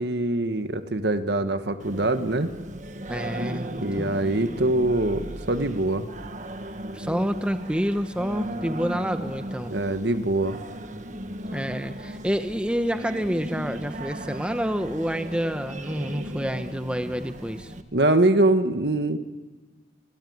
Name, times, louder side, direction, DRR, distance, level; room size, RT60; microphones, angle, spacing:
voice 1, 0.0-2.5 3.8-6.1 9.7-10.6 17.9-19.2, right 2 dB, 65° right, 10 dB, 1.5 m, -23 dB
Singing, 1.8-17.8, right 1 dB, 40° right, 1.6 m, -36 dB
voice 2, 3.1-4.1 6.9-9.7 11.5-17.7, equal, 5° right, 8 dB, 1.0 m, -28 dB
28.0 x 22.5 x 9.5 m, 1.3 s
head